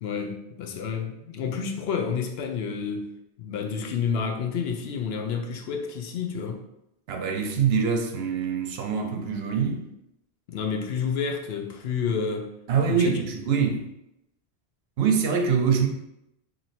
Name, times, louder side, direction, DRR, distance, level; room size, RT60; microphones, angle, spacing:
voice 1, 0.0-3.1 3.4-6.6 10.5-12.5 12.9-13.1, left 6 dB, 70° left, 0.8 m, -29 dB
voice 2, 7.1-9.8 12.7-13.9 15.0-15.9, right 6 dB, 70° right, 0.8 m, -24 dB
3.0 x 2.7 x 4.1 m
omnidirectional pair, 1.1 m